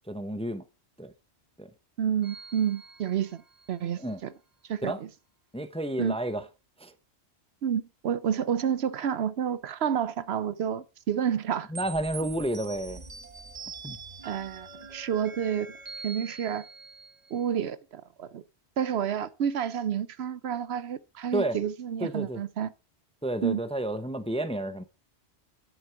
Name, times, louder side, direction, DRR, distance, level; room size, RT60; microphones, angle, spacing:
voice 1, 0.1-0.6 1.0-1.1 1.6-1.7 4.0-4.2 4.8-5.0 5.5-6.4 6.8-6.9 11.7-13.0 13.8-14.0 21.3-21.6 22.0-22.4 23.2-24.8, right 1 dB, 5° left, 0.7 m, -31 dB
voice 2, 2.0-3.4 3.7-4.3 4.7-5.1 6.0-6.2 7.6-11.7 14.2-15.7 16.0-16.7 17.3-18.4 18.8-22.7 23.4-23.6, right 8 dB, 70° right, 0.9 m, -29 dB
sound 1, 2.2-3.8 11.7-17.5, right 4 dB, 40° right, 1.1 m, -44 dB
10.5 x 8.3 x 4.6 m
omnidirectional pair, 1.1 m